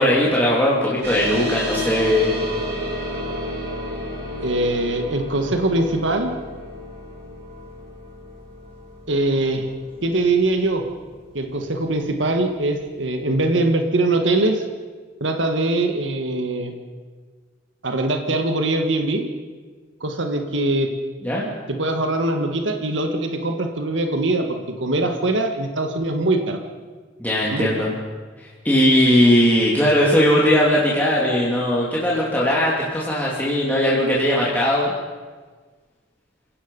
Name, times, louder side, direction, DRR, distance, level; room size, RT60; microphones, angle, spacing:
voice 1, 0.0-2.4 21.2-21.5 27.2-27.9 28.4-34.9, left 1 dB, 10° left, -6 dB, 2.8 m, -19 dB
sound 1, 1.0-11.9, equal, 60° right, 7.4 m, -31 dB
voice 2, 4.4-6.3 9.1-9.7 10.0-10.9 11.3-14.6 15.2-16.7 17.8-19.3 20.0-20.9 21.7-26.6 27.4-27.9, right 2 dB, 85° right, 4 dB, 1.8 m, -22 dB
28.5 x 17.0 x 5.5 m, 1.5 s
head